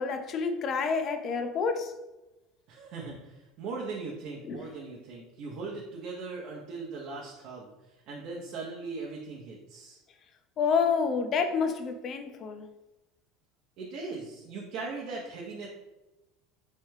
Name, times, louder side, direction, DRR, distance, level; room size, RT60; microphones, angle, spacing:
voice 1, 0.0-1.9 4.4-4.7 10.6-12.7, left 5 dB, 35° left, 0.4 m, -28 dB
voice 2, 2.7-7.7 8.1-10.0 13.8-15.7, right 4 dB, 50° right, 0.7 m, -39 dB
3.3 x 3.2 x 3.2 m
cardioid pair, 150°, 0 cm